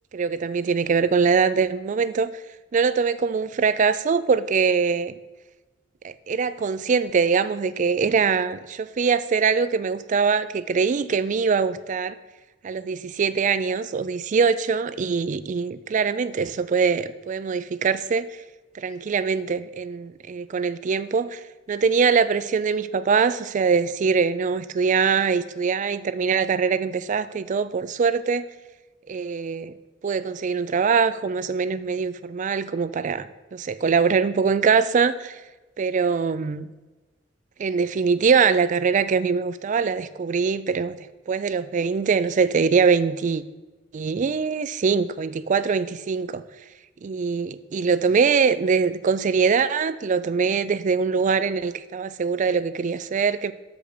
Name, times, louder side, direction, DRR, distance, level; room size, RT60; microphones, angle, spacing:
voice 1, 0.1-2.3 2.7-5.2 6.0-12.2 12.6-18.3 18.7-21.4 21.7-28.4 29.1-29.7 30.0-35.4 35.8-36.7 37.6-41.0 41.3-43.4 43.9-46.4 47.0-53.5, right 5 dB, 40° right, 13 dB, 0.3 m, -23 dB
6.0 x 5.1 x 6.7 m, 1.2 s
head